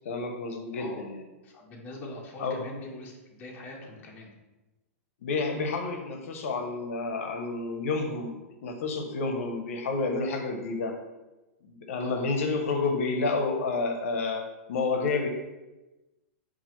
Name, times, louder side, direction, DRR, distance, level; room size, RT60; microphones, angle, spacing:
voice 1, 0.0-1.2 2.4-2.6 5.2-11.0 11.6-15.3, left 3 dB, 65° left, 4 dB, 0.6 m, -30 dB
voice 2, 0.7-1.0 1.4-4.3 12.0-12.3, left 2 dB, 20° left, -2 dB, 0.6 m, -43 dB
5.5 x 2.4 x 2.9 m, 1.1 s
supercardioid pair, 155°, 8 cm